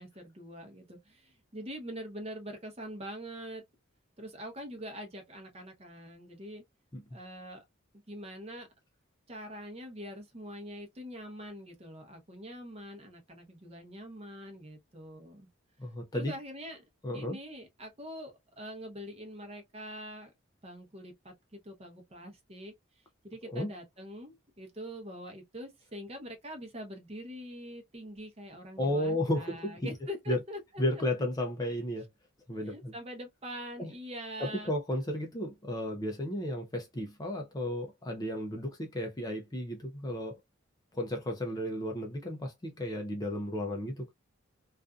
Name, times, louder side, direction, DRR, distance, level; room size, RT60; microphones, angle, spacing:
voice 1, 0.0-3.6 4.2-6.6 7.1-7.6 8.1-8.7 9.3-15.5 15.8-16.8 17.1-20.3 20.6-22.7 23.2-31.0 32.6-34.7, equal, 30° right, 0.7 m, -44 dB
voice 2, 15.8-16.3 17.0-17.4 23.5-23.7 28.8-29.9 30.3-30.4 30.8-32.1 32.5-32.9 33.8-33.9 34.4-40.4 40.9-44.1, left 1 dB, 20° left, 0.4 m, -33 dB
2.5 x 2.4 x 2.2 m
head